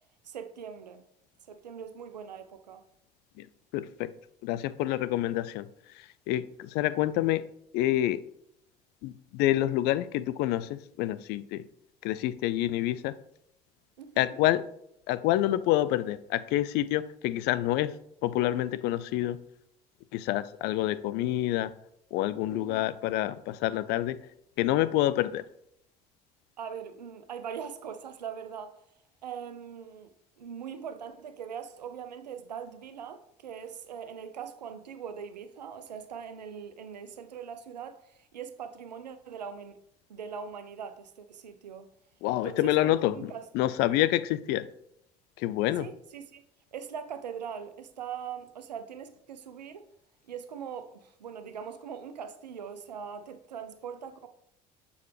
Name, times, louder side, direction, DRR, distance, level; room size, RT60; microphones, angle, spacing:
voice 1, 0.2-1.0 1.5-2.8 14.0-14.4 22.5-22.9 26.6-28.8 29.2-30.1 30.4-39.8 40.1-41.9 42.4-43.5 45.8-46.4 46.7-49.8 50.2-54.3, right 7 dB, 85° right, 0.5 m, -41 dB
voice 2, 3.7-4.1 4.4-5.7 6.3-7.4 7.7-8.2 9.0-11.6 12.0-13.1 14.2-14.6 15.1-17.9 18.2-19.4 20.1-21.7 22.1-24.2 24.6-25.4 42.2-44.7 45.4-45.9, left 14 dB, 55° left, 0.4 m, -27 dB
6.7 x 4.6 x 3.3 m
figure-of-eight pair, 60°, 21 cm